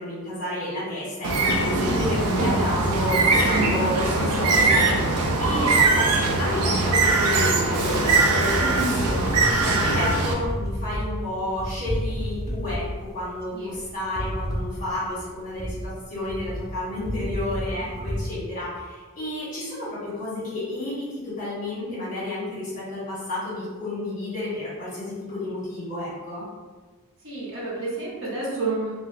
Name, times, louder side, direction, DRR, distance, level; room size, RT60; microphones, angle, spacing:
voice 1, 0.0-9.2 9.6-12.8 13.1-26.4, left 1 dB, 40° left, -10 dB, 1.3 m, -31 dB
Bird, 1.2-10.3, right 3 dB, 90° right, 0.5 m, -21 dB
voice 2, 8.6-9.1 13.5-13.8 27.2-29.1, right 2 dB, 60° right, -6 dB, 1.0 m, -30 dB
sound 1, 8.9-18.2, equal, 15° left, 0.5 m, -31 dB
3.7 x 2.1 x 2.7 m, 1.3 s
head